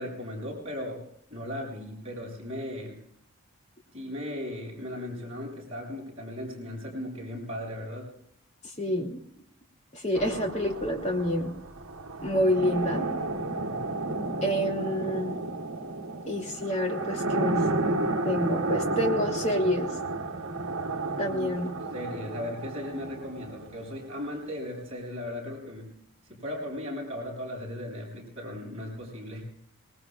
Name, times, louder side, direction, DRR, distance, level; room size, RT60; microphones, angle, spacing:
voice 1, 0.0-3.0 3.9-8.1 13.7-13.8 21.3-21.5 21.9-26.0 26.2-29.4, left 1 dB, 30° right, -3 dB, 6.9 m, -37 dB
voice 2, 8.8-9.2 9.9-11.5 12.2-13.1 14.4-15.4 16.3-17.6 18.2-19.9 21.2-21.7, equal, 30° left, 1 dB, 2.9 m, -28 dB
sound 1, 10.1-24.0, right 2 dB, 75° right, 1.3 m, -32 dB
25.5 x 20.0 x 2.5 m, 0.72 s
head